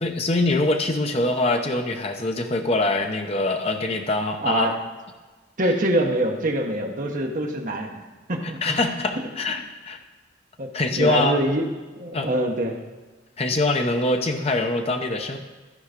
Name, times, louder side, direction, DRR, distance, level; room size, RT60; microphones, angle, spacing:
voice 1, 0.0-4.7 8.4-10.0 10.7-11.4 12.1-12.3 13.4-15.4, left 2 dB, 30° left, 5 dB, 0.7 m, -24 dB
voice 2, 4.4-4.7 5.6-8.0 8.3-8.7 10.6-10.7 11.0-11.7 12.0-12.8, right 1 dB, 45° right, 2 dB, 1.1 m, -24 dB
13.0 x 4.7 x 5.1 m, 1.3 s
head